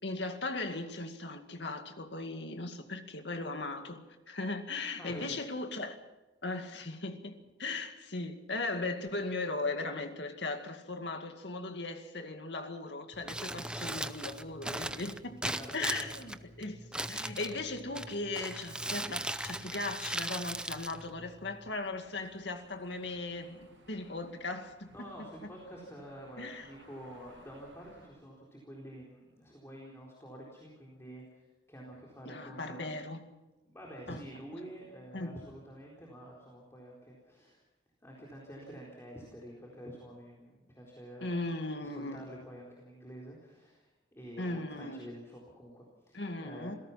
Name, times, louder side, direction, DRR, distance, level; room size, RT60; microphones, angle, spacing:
voice 1, 0.0-6.0 6.4-7.3 7.6-24.9 26.4-26.7 32.3-33.2 34.1-34.2 35.1-35.4 41.2-42.3 44.4-45.0 46.1-46.7, left 2 dB, 65° left, 2.2 m, -38 dB
voice 2, 5.0-5.4 15.5-16.1 23.9-24.1 24.9-32.9 33.6-37.6 38.0-41.3 41.8-43.9 44.1-46.8, equal, 15° left, 4.1 m, -48 dB
Crumpling crinkling, 13.1-21.7, right 1 dB, 5° right, 0.6 m, -39 dB
sound 1, 21.7-28.1, right 1 dB, 75° right, 7.4 m, -61 dB
27.5 x 17.5 x 5.8 m
head